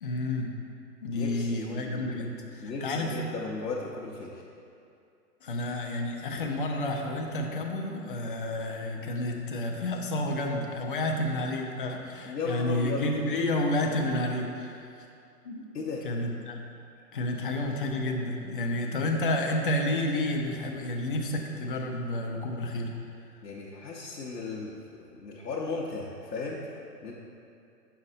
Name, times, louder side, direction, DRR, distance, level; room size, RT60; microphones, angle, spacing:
voice 1, 0.0-0.5 1.0-3.1 5.4-15.0 15.4-15.6 16.0-16.6 17.1-22.9, left 1 dB, 35° left, 2 dB, 0.5 m, -30 dB
voice 2, 1.1-2.2 2.6-4.3 12.3-13.1 15.7-16.1 23.4-26.7 27.0-27.1, left 3 dB, 75° left, -4 dB, 0.9 m, -36 dB
7.1 x 5.5 x 2.6 m, 2.6 s
figure-of-eight pair, 120°, 50 cm